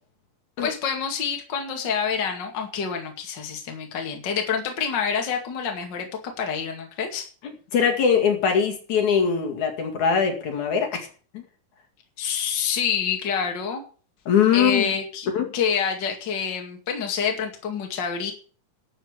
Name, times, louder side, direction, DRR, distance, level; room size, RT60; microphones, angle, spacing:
voice 1, 0.6-7.3 12.2-13.8 14.5-15.3 15.5-18.3, left 6 dB, 35° left, 2 dB, 2.5 m, -27 dB
voice 2, 7.7-11.1 11.3-11.4 14.3-14.9 15.3-15.5, left 7 dB, 60° left, 4 dB, 3.4 m, -21 dB
12.5 x 7.3 x 8.2 m, 0.41 s
omnidirectional pair, 3.9 m